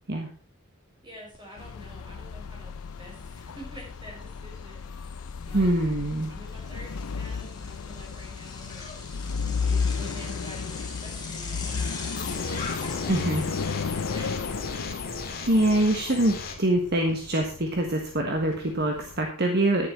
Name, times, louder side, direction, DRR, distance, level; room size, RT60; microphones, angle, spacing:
voice 1, 1.0-5.1 5.4-5.8 6.3-8.9 9.6-14.8, equal, 20° right, -2 dB, 5.5 m, -48 dB
Bicycle, 1.3-1.4 1.8-15.6, left 4 dB, 20° left, 2.8 m, -43 dB
Noisy Garbage truck, 1.6-19.3, left 5 dB, 75° left, 0.5 m, -34 dB
voice 2, 5.5-6.3 13.1-13.4 15.5-19.9, right 1 dB, 45° right, 2 dB, 1.4 m, -24 dB
sound 1, 12.2-16.6, left 4 dB, 45° left, 2.3 m, -36 dB
11.0 x 9.9 x 4.3 m, 0.41 s
head